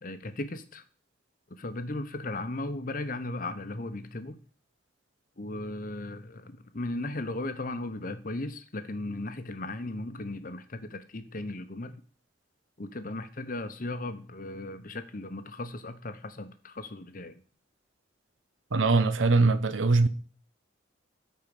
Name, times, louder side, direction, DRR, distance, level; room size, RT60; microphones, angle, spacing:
voice 1, 0.0-0.8 1.5-4.4 5.4-11.9 12.8-17.4, left 2 dB, 45° left, 0.9 m, -36 dB
voice 2, 18.7-20.1, right 3 dB, 75° right, 0.8 m, -22 dB
13.5 x 4.6 x 5.3 m
head